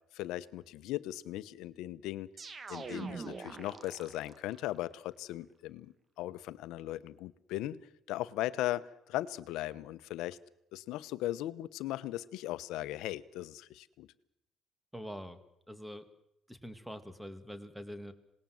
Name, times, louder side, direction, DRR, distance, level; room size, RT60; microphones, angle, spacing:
voice 1, 0.1-2.3 2.7-7.8 8.1-10.4 10.7-14.1, left 15 dB, 85° left, 15 dB, 1.0 m, -38 dB
sound 1, 2.4-4.6, right 4 dB, 35° right, 1.5 m, -43 dB
voice 2, 14.9-15.4 15.7-16.1 16.5-18.1, equal, 5° right, 11 dB, 2.4 m, -44 dB
26.5 x 19.5 x 7.8 m, 0.81 s
cardioid pair, 95°, 0 cm